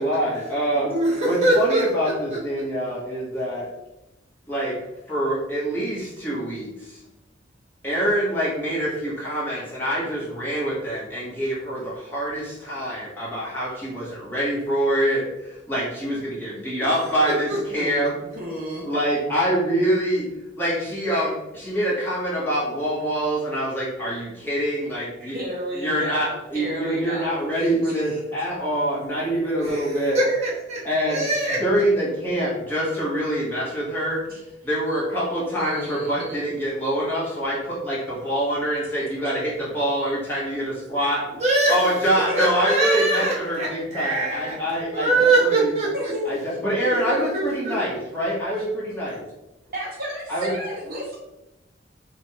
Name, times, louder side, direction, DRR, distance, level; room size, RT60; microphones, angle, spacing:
voice 1, 0.0-0.9 1.2-3.7 4.5-4.8 5.1-7.0 7.8-18.2 18.8-20.3 20.6-25.4 25.7-30.2 30.8-31.3 31.6-34.2 34.6-41.3 41.7-45.7 46.2-49.2 50.3-50.5, right 1 dB, 10° left, -8 dB, 1.3 m, -25 dB
voice 2, 0.7-2.4 17.3-17.6 18.0-18.1 29.6-31.6 41.4-41.8 42.1-44.6 44.9-46.1 46.7-47.8, right 2 dB, 35° right, -6 dB, 1.2 m, -23 dB
voice 3, 18.3-18.9 25.2-28.2 34.3-34.4 35.5-36.4 41.8-43.3 45.9-46.3 49.7-51.2, left 1 dB, 50° right, -3 dB, 1.3 m, -32 dB
3.3 x 2.6 x 4.3 m, 0.94 s
head